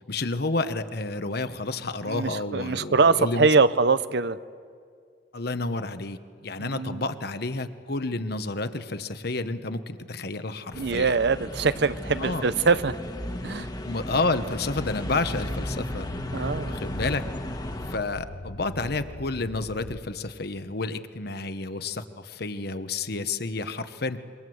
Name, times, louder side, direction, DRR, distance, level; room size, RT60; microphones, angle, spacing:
voice 1, 0.1-3.6 5.3-11.2 12.2-12.5 13.8-16.1 16.3-24.2, left 3 dB, 60° left, 10 dB, 1.2 m, -30 dB
voice 2, 2.1-4.4 6.6-7.0 10.8-13.0 13.4-13.7 16.3-16.8, right 4 dB, 65° right, 15 dB, 0.7 m, -23 dB
sound 1, 10.7-18.0, left 1 dB, 20° left, 1.5 m, -34 dB
sound 2, 14.5-20.3, left 2 dB, 80° left, 1.1 m, -41 dB
26.5 x 23.5 x 7.9 m, 2.2 s
head